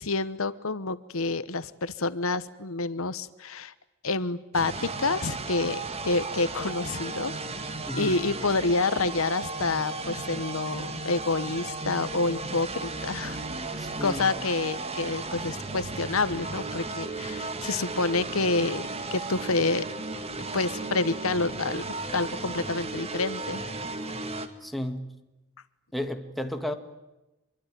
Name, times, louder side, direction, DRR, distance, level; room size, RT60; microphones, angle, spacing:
voice 1, 0.0-3.7 4.0-7.3 7.6-7.7 8.0-13.4 14.0-19.9 20.5-21.8 22.1-23.7, left 3 dB, 75° left, 15 dB, 1.1 m, -28 dB
sound 1, 4.5-24.5, right 3 dB, 30° right, 2.0 m, -35 dB
voice 2, 7.9-8.2 13.8-14.3 24.6-25.1 25.9-26.7, left 1 dB, ahead, 6 dB, 1.9 m, -33 dB
25.5 x 23.5 x 9.3 m, 1.0 s
head